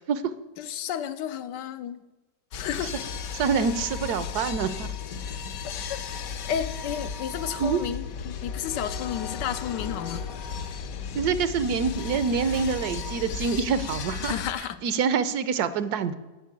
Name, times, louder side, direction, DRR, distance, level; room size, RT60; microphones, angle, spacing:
voice 1, 0.6-2.0 2.5-2.9 5.9-6.0 6.5-10.3 14.2-14.8, left 9 dB, 85° left, 11 dB, 1.3 m, -32 dB
sound 1, 2.5-14.5, left 6 dB, 65° left, 1.1 m, -34 dB
voice 2, 3.3-4.9 7.6-7.8 11.1-14.4 14.8-16.2, right 6 dB, 70° right, 13 dB, 1.1 m, -26 dB
11.0 x 5.3 x 8.2 m, 1.1 s
omnidirectional pair, 1.8 m